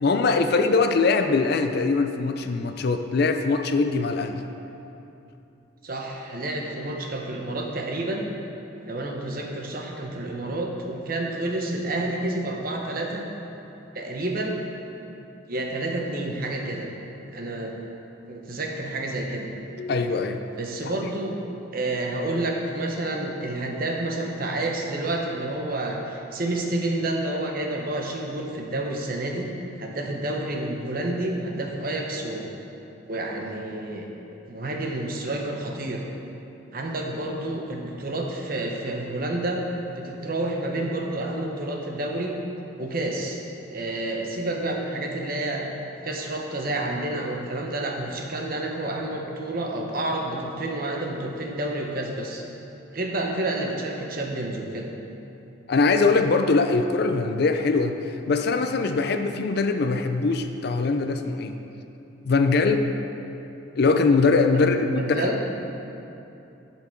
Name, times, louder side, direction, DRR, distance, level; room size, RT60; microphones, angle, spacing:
voice 1, 0.0-4.5 19.8-20.4 20.8-20.9 55.7-58.0 58.3-61.6 62.2-62.9 63.8-64.9 65.2-65.3, left 4 dB, 50° left, 7 dB, 0.4 m, -22 dB
voice 2, 5.8-8.3 8.8-13.3 13.9-14.6 15.5-16.9 17.3-17.7 18.3-19.5 20.6-21.4 21.7-29.5 29.8-32.5 33.1-34.1 34.5-36.0 36.7-39.6 39.9-42.3 42.8-43.4 43.7-45.7 46.0-52.4 52.9-54.9 64.5-64.7 65.0-65.4, right 2 dB, 45° right, 1 dB, 0.9 m, -29 dB
10.5 x 5.8 x 4.5 m, 2.9 s
head